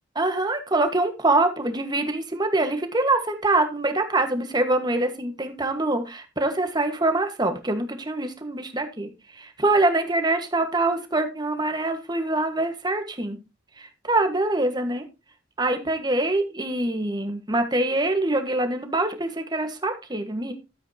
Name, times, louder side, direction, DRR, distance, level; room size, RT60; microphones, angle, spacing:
voice 1, 0.1-13.4 13.8-15.0 15.6-20.5, right 2 dB, 20° right, 6 dB, 1.5 m, -24 dB
13.0 x 8.1 x 2.9 m, 0.27 s
head